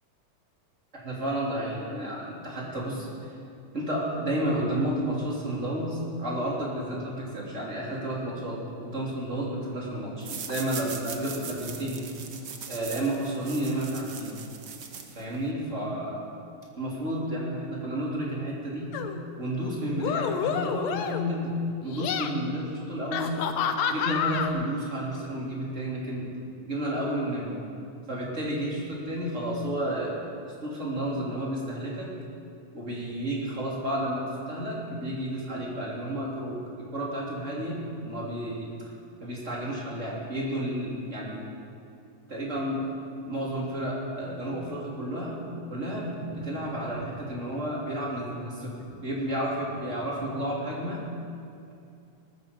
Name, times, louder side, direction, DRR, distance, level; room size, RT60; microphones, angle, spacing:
voice 1, 0.9-3.1 3.7-12.1 12.7-14.3 15.2-16.2 16.8-18.9 19.4-23.4 23.9-26.3 26.6-27.6 28.1-30.2 30.4-32.1 32.7-38.7 39.2-41.4 42.3-42.9 43.3-45.4 45.7-51.0, right 1 dB, 25° right, -4 dB, 3.3 m, -31 dB
sound 1, 10.2-15.5, right 6 dB, 60° right, 1.1 m, -40 dB
sound 2, 18.9-19.2 19.9-21.4 21.8-22.3 23.1-24.5, left 8 dB, 75° left, 2.0 m, -29 dB
19.0 x 14.5 x 5.2 m, 2.6 s
omnidirectional pair, 3.3 m